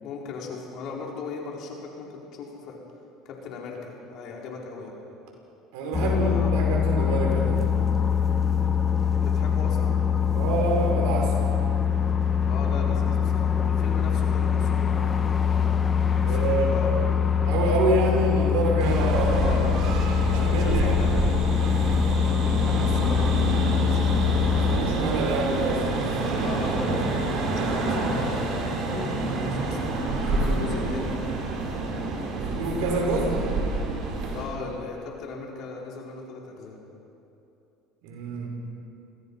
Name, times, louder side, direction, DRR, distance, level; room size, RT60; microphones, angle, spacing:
voice 1, 0.0-2.8 3.2-5.0 6.0-6.6 9.2-10.0 12.4-15.1 16.2-17.1 19.3-19.8 20.3-21.4 22.0-24.4 26.4-29.8 30.2-31.4 34.3-36.8, left 4 dB, 60° left, -1 dB, 4.7 m, -38 dB
voice 2, 5.7-7.8 10.3-11.6 16.2-16.7 17.4-19.5 20.3-21.1 24.5-26.1 32.5-33.4 38.0-38.5, right 2 dB, 75° right, 1 dB, 5.6 m, -27 dB
sound 1, 5.9-24.8, left 7 dB, 30° left, 1.3 m, -23 dB
sound 2, 18.8-34.4, right 3 dB, 60° right, 5.2 m, -27 dB
26.5 x 20.5 x 5.7 m, 2.7 s
supercardioid pair, 85°, 0 cm